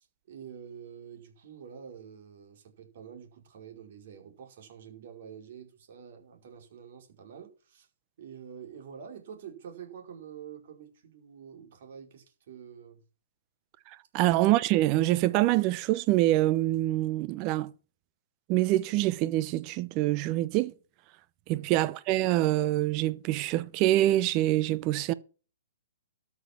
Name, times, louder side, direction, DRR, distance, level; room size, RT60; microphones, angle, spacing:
voice 1, 0.3-7.9 8.2-13.0 21.5-21.7, right 8 dB, 55° right, 4.9 m, -47 dB
voice 2, 14.1-17.7 18.5-20.7 21.5-25.1, right 16 dB, 35° right, 0.9 m, -25 dB
13.0 x 7.2 x 6.0 m
hypercardioid pair, 135°, 0 cm